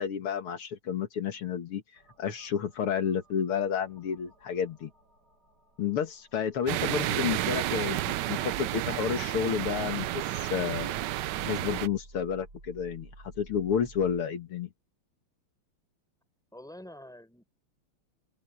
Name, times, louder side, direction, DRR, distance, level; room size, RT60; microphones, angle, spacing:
voice 1, 0.0-1.8 2.2-4.9 5.8-11.0 11.4-14.7, left 8 dB, 80° left, 2.6 m, -31 dB
sound 1, 1.9-14.2, right 2 dB, 45° right, 7.4 m, -55 dB
sound 2, 6.7-11.9, right 15 dB, 75° right, 1.0 m, -31 dB
voice 2, 16.5-17.4, left 1 dB, ahead, 4.6 m, -47 dB
open air
omnidirectional pair, 2.4 m